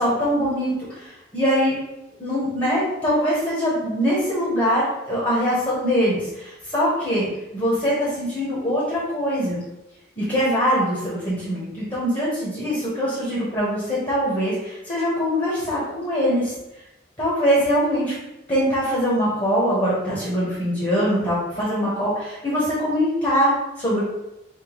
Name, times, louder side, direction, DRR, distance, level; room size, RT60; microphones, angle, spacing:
voice 1, 0.0-1.7 2.2-7.3 7.5-9.6 10.2-16.5 17.2-18.1 18.5-24.0, equal, 25° left, -7 dB, 1.0 m, -22 dB
5.4 x 2.3 x 3.0 m, 0.93 s
head